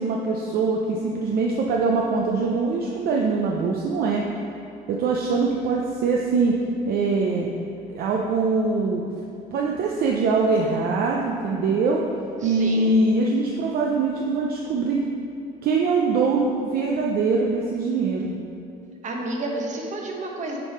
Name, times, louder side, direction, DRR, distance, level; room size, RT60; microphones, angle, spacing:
voice 1, 0.0-4.2 4.9-6.6 6.9-7.5 7.9-9.0 9.5-12.0 12.4-15.1 15.6-18.3, right 4 dB, 65° right, -1 dB, 0.5 m, -23 dB
voice 2, 12.4-13.0 19.0-20.6, right 2 dB, 45° right, 0 dB, 1.0 m, -30 dB
6.7 x 3.6 x 4.9 m, 2.6 s
cardioid pair, 110°, 17 cm